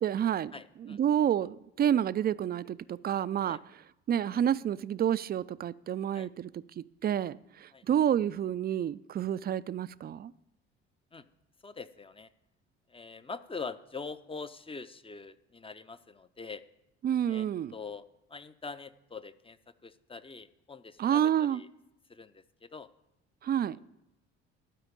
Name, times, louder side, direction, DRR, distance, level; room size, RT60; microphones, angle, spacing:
voice 1, 0.0-0.5 0.8-3.6 4.1-10.3 17.0-17.7 21.0-21.6 23.4-23.8, right 10 dB, 30° right, 0.4 m, -29 dB
voice 2, 0.5-1.0 3.5-3.6 6.1-6.3 7.7-7.8 11.1-11.2 11.6-12.3 12.9-16.6 17.3-17.5 17.7-18.0 18.3-19.6 19.8-21.7 22.1-22.9, left 4 dB, 15° left, 0.6 m, -43 dB
12.0 x 5.0 x 8.3 m
hypercardioid pair, 50°, 33 cm